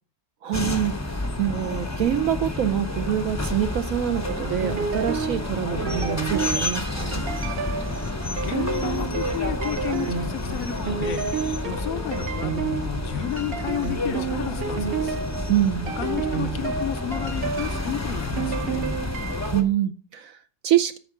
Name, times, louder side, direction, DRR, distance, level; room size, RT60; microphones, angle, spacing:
voice 1, 0.4-7.3 15.5-15.9 19.5-21.0, right 11 dB, 70° right, 0.9 m, -25 dB
sound 1, 0.5-19.6, left 2 dB, 15° left, 0.6 m, -30 dB
sound 2, 4.2-19.5, right 6 dB, 45° right, 1.0 m, -31 dB
voice 2, 8.4-11.3 11.6-15.2 16.0-18.8, left 11 dB, 70° left, 0.9 m, -32 dB
9.0 x 6.3 x 4.8 m
omnidirectional pair, 1.7 m